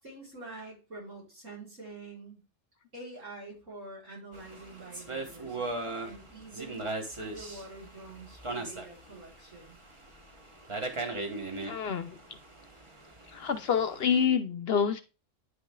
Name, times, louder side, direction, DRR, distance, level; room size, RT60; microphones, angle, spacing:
voice 1, 0.0-2.4 2.9-9.8, right 2 dB, 75° right, 5.2 m, -46 dB
sound 1, 4.3-14.2, right 2 dB, 25° right, 1.0 m, -39 dB
voice 2, 11.7-12.2 13.3-15.0, left 7 dB, 60° left, 0.7 m, -27 dB
9.5 x 6.1 x 2.2 m
omnidirectional pair, 1.3 m